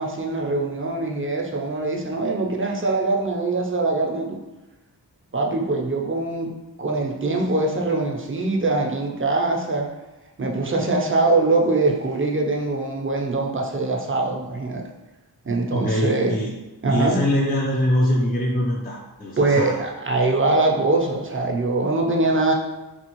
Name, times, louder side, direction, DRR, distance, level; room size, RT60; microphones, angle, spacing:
voice 1, 0.0-4.4 5.3-6.5 6.8-9.9 10.4-14.9 15.4-16.3 16.8-17.2 19.4-22.5, right 2 dB, 30° right, 0 dB, 0.6 m, -23 dB
voice 2, 15.7-16.5 16.9-19.8, left 1 dB, 20° left, -3 dB, 0.5 m, -23 dB
3.4 x 2.4 x 3.0 m, 1.1 s
wide cardioid pair, 45°, 43 cm